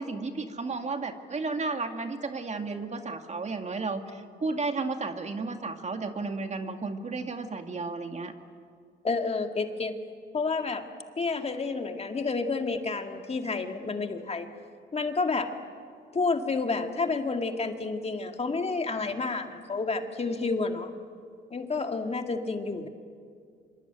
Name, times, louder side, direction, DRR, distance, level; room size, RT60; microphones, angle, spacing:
voice 1, 0.0-8.3, right 3 dB, 35° right, 6 dB, 2.2 m, -33 dB
voice 2, 9.0-10.0 10.3-10.9 11.2-14.5 14.9-15.5 16.1-20.9 21.5-22.9, left 3 dB, 30° left, 5 dB, 2.1 m, -30 dB
26.0 x 24.5 x 9.1 m, 2.2 s
cardioid pair, 90°, 20 cm